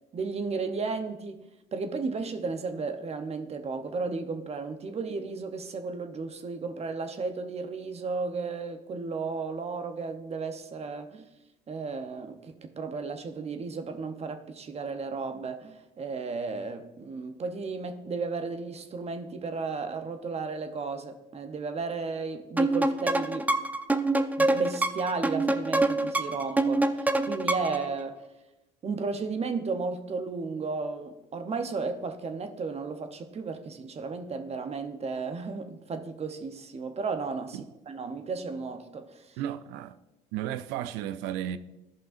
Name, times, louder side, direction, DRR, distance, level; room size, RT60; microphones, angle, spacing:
voice 1, 0.1-1.4 1.7-11.3 11.7-23.6 24.4-28.3 28.8-39.4, right 4 dB, 40° right, 0.8 m, -34 dB
sound 1, 22.6-27.9, right 2 dB, 10° right, 0.5 m, -26 dB
voice 2, 39.4-39.9 40.3-41.6, right 11 dB, 80° right, 0.5 m, -33 dB
13.0 x 5.4 x 2.5 m
supercardioid pair, 70°, 17 cm